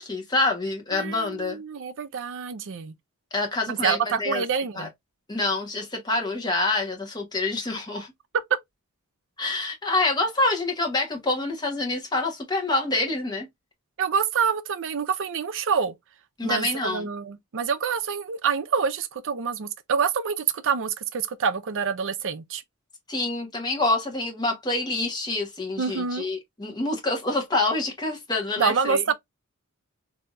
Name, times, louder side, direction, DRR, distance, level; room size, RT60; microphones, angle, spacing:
voice 1, 0.0-1.6 3.3-4.4 4.7-4.9 5.3-8.1 9.4-13.5 16.4-17.1 23.1-29.0, left 2 dB, 20° left, 1.1 m, -26 dB
voice 2, 0.9-2.9 3.7-4.9 14.0-16.0 16.4-22.6 25.8-26.3 28.6-29.1, right 6 dB, 60° right, 0.5 m, -26 dB
3.4 x 2.7 x 2.4 m
head